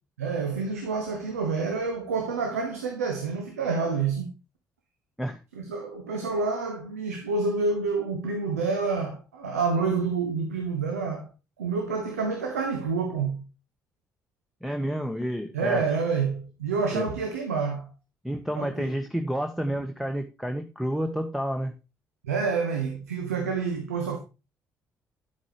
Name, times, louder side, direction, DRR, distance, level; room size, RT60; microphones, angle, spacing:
voice 1, 0.2-4.3 5.5-11.3 11.6-13.4 15.5-17.9 18.5-18.9 22.2-24.2, right 4 dB, 90° right, 1.0 m, -28 dB
voice 2, 14.6-15.8 16.9-17.1 18.2-21.7, equal, ahead, 1.2 m, -30 dB
9.6 x 8.2 x 3.0 m
hypercardioid pair, 45°, 8 cm